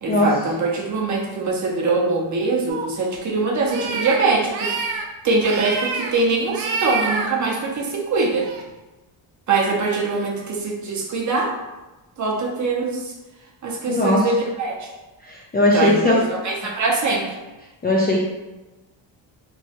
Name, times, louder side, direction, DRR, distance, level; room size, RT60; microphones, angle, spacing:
voice 1, 0.0-4.7 5.2-8.5 9.5-11.5 12.2-13.1 13.6-14.9 15.7-17.4, right 3 dB, 40° right, -1 dB, 0.6 m, -23 dB
sound 1, 2.7-2.8 3.6-4.2 4.5-5.0 5.4-6.1 6.5-7.3 8.3-8.6, right 4 dB, 90° right, 0.6 m, -27 dB
voice 2, 13.9-14.2 15.3-16.2 17.8-18.2, left 1 dB, 25° left, -4 dB, 0.3 m, -18 dB
3.0 x 2.2 x 2.8 m, 1.1 s
cardioid pair, 120°, 46 cm